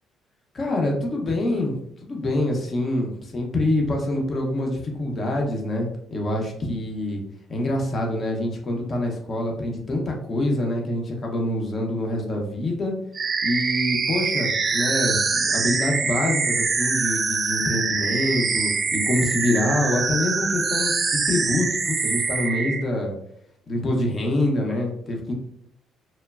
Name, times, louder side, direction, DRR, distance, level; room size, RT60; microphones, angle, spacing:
voice 1, 0.5-7.2 7.5-12.9 13.4-20.9 21.3-23.1 23.7-25.3, left 1 dB, 40° left, 0 dB, 0.7 m, -25 dB
sound 1, 13.1-22.8, right 4 dB, 40° right, 0.3 m, -24 dB
3.0 x 2.1 x 2.3 m, 0.71 s
cardioid pair, 90°, 0 cm